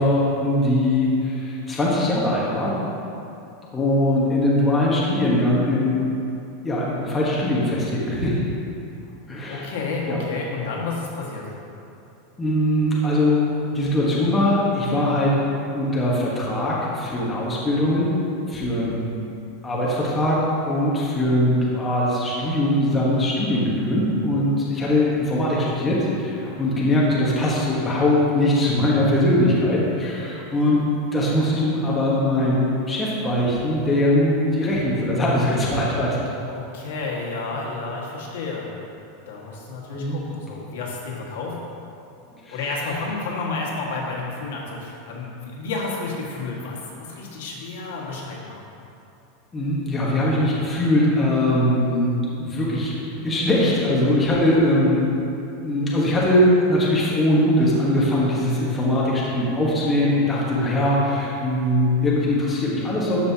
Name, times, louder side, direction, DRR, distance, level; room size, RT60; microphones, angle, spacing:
voice 1, 0.0-2.8 3.7-6.2 6.6-8.4 9.3-9.7 10.1-10.2 12.4-13.4 13.7-15.4 15.7-18.2 18.5-19.1 19.6-30.8 31.1-36.2 39.9-40.2 42.4-42.6 49.5-52.9 53.2-55.1 55.6-63.2, left 1 dB, 10° left, -6 dB, 1.2 m, -21 dB
voice 2, 9.5-11.5 36.5-38.7 39.3-41.6 42.5-48.6, left 3 dB, 80° left, -3 dB, 1.6 m, -31 dB
13.0 x 5.5 x 2.8 m, 2.7 s
supercardioid pair, 165°, 0 cm